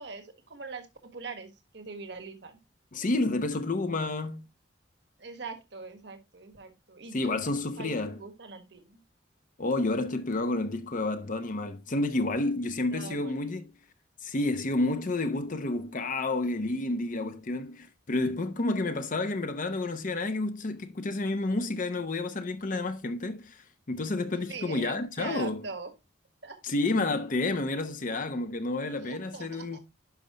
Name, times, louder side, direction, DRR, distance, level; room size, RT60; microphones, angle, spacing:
voice 1, 0.0-2.6 5.2-7.4 7.8-9.0 12.9-13.5 24.5-25.9 26.4-26.6 29.0-29.8, right 4 dB, 70° right, 1.5 m, -42 dB
voice 2, 2.9-4.5 7.1-8.2 9.6-13.7 14.2-25.6 26.6-29.8, left 2 dB, 45° left, 0.8 m, -30 dB
10.5 x 5.4 x 2.9 m
head